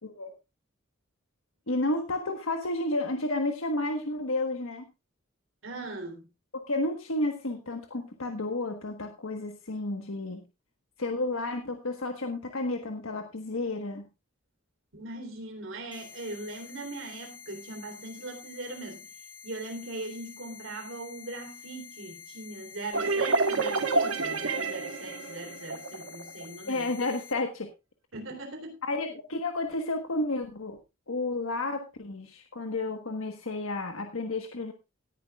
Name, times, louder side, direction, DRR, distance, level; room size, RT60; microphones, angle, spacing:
voice 1, 1.7-4.9 6.5-10.4 11.0-14.0 26.7-27.7 28.9-30.8 31.1-34.7, left 2 dB, 80° left, 1.4 m, -31 dB
voice 2, 5.6-6.3 14.9-19.1 19.4-26.9 28.1-28.8, right 2 dB, 70° right, 3.6 m, -40 dB
sound 1, 15.9-27.3, left 7 dB, 25° left, 1.6 m, -48 dB
sound 2, 22.9-26.4, right 3 dB, 85° right, 1.5 m, -28 dB
17.5 x 10.5 x 2.4 m
head